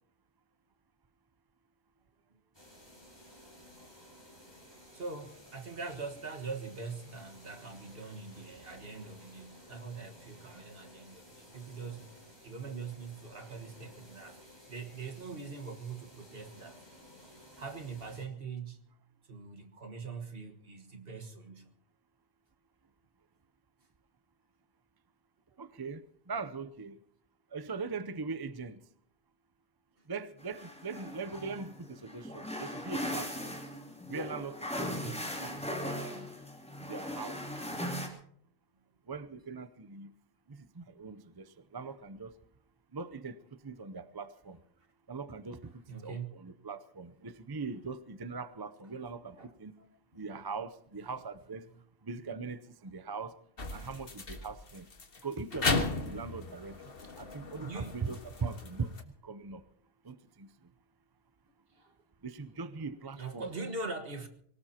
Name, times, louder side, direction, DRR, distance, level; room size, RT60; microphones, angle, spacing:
sound 1, 2.5-18.3, equal, 25° left, 5.1 m, -55 dB
voice 1, 4.9-12.1 12.4-14.4 14.7-16.8 17.6-18.9 19.3-21.7 30.0-30.1 34.8-35.2 45.9-46.4 49.0-49.5 49.8-49.9 50.1-50.2 51.0-51.2 57.0-58.1 61.7-61.9 63.2-64.3, right 4 dB, 65° right, 1.8 m, -43 dB
voice 2, 25.6-27.0 27.5-28.8 30.1-33.6 34.1-34.9 35.4-36.3 36.8-37.4 39.1-40.1 40.5-42.4 42.9-44.6 45.1-45.7 46.0-49.8 50.1-51.7 52.0-53.3 53.7-54.9 55.2-56.9 57.2-59.0 59.2-59.6 60.0-60.5 62.2-63.5, right 4 dB, 25° right, 0.6 m, -41 dB
sound 2, 30.4-38.1, left 1 dB, 5° left, 2.8 m, -39 dB
sound 3, 53.6-59.0, left 3 dB, 65° left, 1.8 m, -36 dB
24.0 x 18.5 x 2.9 m
omnidirectional pair, 1.1 m